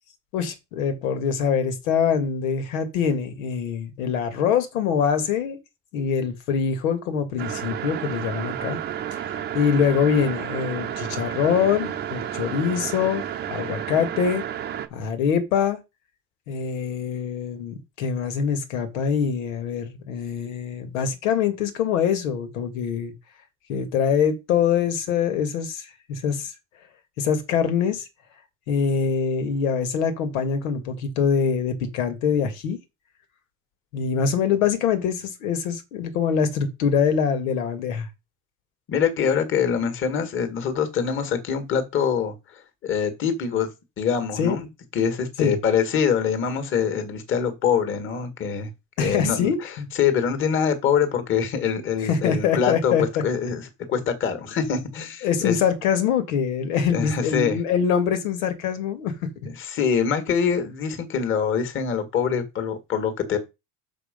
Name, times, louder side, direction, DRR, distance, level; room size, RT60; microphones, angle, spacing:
voice 1, 0.3-5.6 5.9-8.8 9.1-13.2 13.5-14.4 14.9-15.8 16.5-23.1 23.7-26.5 27.2-28.1 28.7-32.8 33.9-38.1 44.4-44.6 45.4-45.6 49.0-49.9 52.0-53.2 55.2-59.3, left 7 dB, 85° left, 2.2 m, -24 dB
sound 1, 7.4-14.9, right 10 dB, 25° right, 0.8 m, -31 dB
voice 2, 38.9-42.3 42.8-43.7 44.0-48.7 49.0-49.5 49.9-53.0 53.2-55.6 56.9-57.6 59.4-63.4, left 7 dB, 30° left, 1.9 m, -24 dB
6.6 x 6.3 x 5.3 m
supercardioid pair, 150°, 40 cm